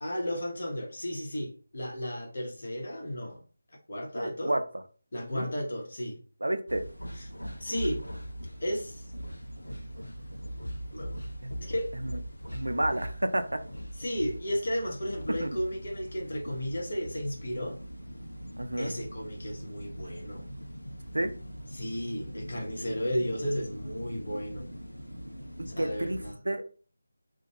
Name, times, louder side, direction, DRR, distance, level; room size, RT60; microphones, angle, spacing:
voice 1, 0.0-3.4 3.9-4.5 5.1-6.2 7.2-7.3 7.6-8.0 8.6-9.1 10.9-11.1 11.6-11.9 14.0-17.8 18.8-20.5 21.7-24.7 25.7-26.3, equal, 55° left, -1 dB, 1.0 m, -33 dB
voice 2, 4.2-4.6 5.3-5.5 6.4-6.8 11.4-11.5 12.0-12.1 12.5-13.6 15.4-15.6 18.6-18.9 21.1-21.3 25.6-26.9, right 1 dB, 75° right, 7 dB, 0.4 m, -30 dB
sound 1, 6.7-26.3, equal, 90° left, 0.5 m, -41 dB
2.5 x 2.2 x 2.8 m, 0.41 s
figure-of-eight pair, 160°, 0 cm